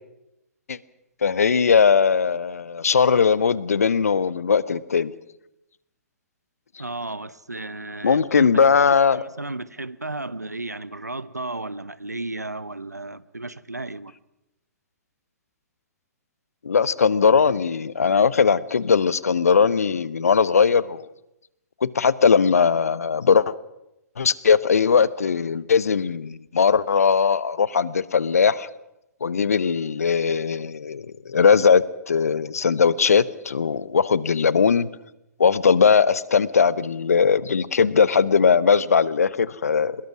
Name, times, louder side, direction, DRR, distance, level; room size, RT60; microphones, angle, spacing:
voice 1, 1.2-5.1 8.0-9.2 16.6-21.1 21.8-23.5 24.2-28.7 29.2-34.9 35.4-40.0, left 6 dB, 65° left, 19 dB, 0.9 m, -19 dB
voice 2, 6.8-8.5 8.9-14.1, right 2 dB, 85° right, 18 dB, 0.9 m, -34 dB
23.5 x 21.0 x 6.1 m, 0.88 s
figure-of-eight pair, 120°, 9 cm